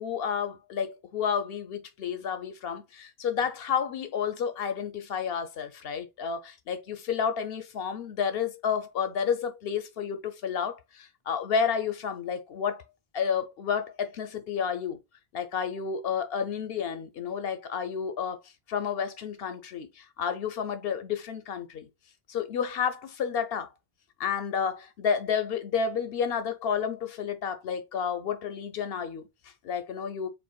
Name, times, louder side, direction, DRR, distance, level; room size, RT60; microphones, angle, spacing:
voice 1, 0.0-12.8 13.1-15.0 15.3-18.4 18.7-21.9 22.3-23.7 24.2-30.3, left 7 dB, 70° left, 0.8 m, -31 dB
5.2 x 3.6 x 2.2 m
omnidirectional pair, 1.1 m